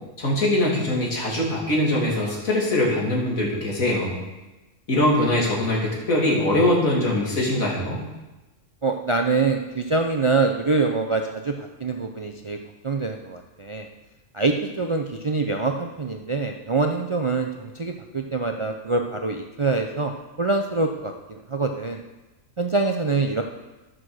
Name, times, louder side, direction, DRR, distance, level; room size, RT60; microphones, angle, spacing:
voice 1, 0.2-4.2 4.9-8.0, left 1 dB, 90° left, -4 dB, 3.2 m, -22 dB
voice 2, 8.8-12.6 12.8-13.9 14.3-20.1 20.4-22.0 22.6-23.4, right 3 dB, 45° right, 3 dB, 0.4 m, -25 dB
12.5 x 6.2 x 6.3 m, 1.1 s
omnidirectional pair, 1.4 m